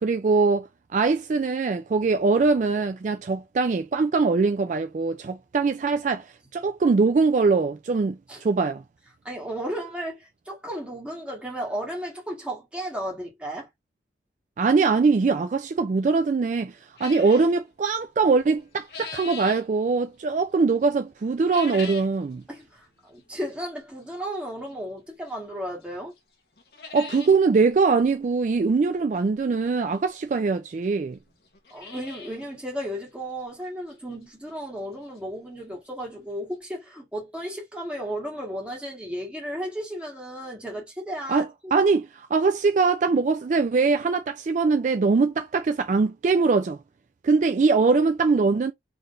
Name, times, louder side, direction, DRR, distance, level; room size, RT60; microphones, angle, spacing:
voice 1, 0.0-8.8 14.6-22.4 26.9-31.2 41.3-46.8 47.2-48.7, right 4 dB, 45° right, 0.3 m, -22 dB
voice 2, 9.2-13.7 22.5-26.1 31.7-41.5, equal, 5° right, 1.6 m, -34 dB
sound 1, 17.0-17.5 18.5-19.6 21.4-22.2 22.6-22.7 23.5-23.6 25.3-25.4 25.8-25.9 26.2-26.3 26.6-27.4 27.7-27.8 28.0-28.1 29.7-29.8 30.5-30.6 30.8-30.9 31.4-32.5 32.8-32.9 33.4-33.5 33.9-34.0 35.7-35.8 36.0-36.1 36.5-36.6, left 4 dB, 65° left, 1.1 m, -40 dB
3.8 x 3.3 x 2.5 m
head